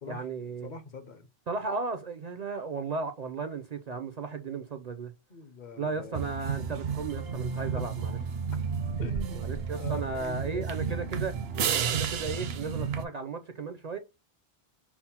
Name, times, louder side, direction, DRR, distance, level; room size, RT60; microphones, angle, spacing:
voice 1, 0.1-0.7 1.5-5.1 5.8-8.2 9.4-11.3 11.7-14.0, right 4 dB, 55° right, 0.5 m, -35 dB
voice 2, 0.6-1.3 5.3-6.2 7.5-8.0 9.0-9.5 9.8-11.0, left 3 dB, 50° left, 0.7 m, -42 dB
sound 1, 6.1-13.0, right 6 dB, 75° right, 0.8 m, -32 dB
5.8 x 2.0 x 4.2 m
omnidirectional pair, 1.1 m